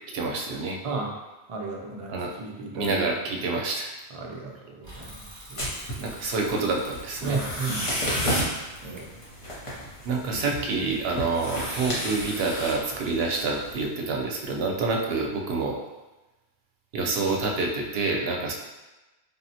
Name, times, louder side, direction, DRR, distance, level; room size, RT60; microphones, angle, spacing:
voice 1, 0.1-0.8 2.1-2.3 2.7-3.9 6.0-7.4 10.1-15.8 16.9-18.5, right 3 dB, 70° right, 0 dB, 0.8 m, -27 dB
voice 2, 0.8-1.2 1.5-3.0 4.1-5.7 7.2-8.3 8.8-9.2 10.2-10.4, right 3 dB, 50° right, -1 dB, 0.4 m, -35 dB
Bicycle / Mechanisms, 4.8-10.3, equal, 20° right, 1.1 m, -47 dB
sound 1, 5.6-13.8, equal, 35° left, 0.7 m, -32 dB
3.6 x 2.0 x 2.7 m, 1.1 s
omnidirectional pair, 1.1 m